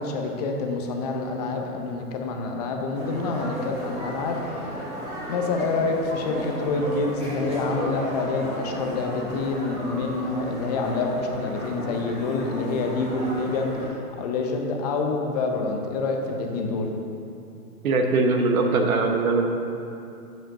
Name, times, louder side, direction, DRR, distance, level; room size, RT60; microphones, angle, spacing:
voice 1, 0.0-4.9 5.3-16.9, left 3 dB, 25° left, 3 dB, 0.6 m, -27 dB
sound 1, 2.9-13.9, equal, 15° right, 1.9 m, -33 dB
voice 2, 17.8-19.5, right 3 dB, 60° right, 3 dB, 1.1 m, -21 dB
7.9 x 4.9 x 5.8 m, 2.6 s
hypercardioid pair, 135°, 47 cm